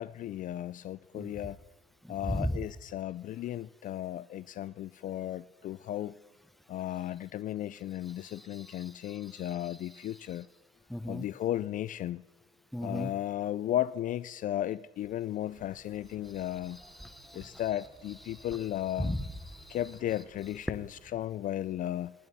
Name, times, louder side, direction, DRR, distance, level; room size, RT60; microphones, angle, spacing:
voice 1, 0.0-1.6 2.1-6.1 6.7-10.5 11.1-12.2 12.8-16.8 17.3-19.2 19.7-22.1, left 12 dB, 50° left, 0.4 m, -35 dB
voice 2, 2.0-2.6 8.1-10.4 10.9-11.3 12.7-13.1 16.3-17.6 18.3-18.7 19.0-19.8, equal, ahead, 0.8 m, -38 dB
sound 1, 15.5-21.1, right 2 dB, 50° right, 5.1 m, -58 dB
29.5 x 10.5 x 4.2 m
cardioid pair, 110°, 17 cm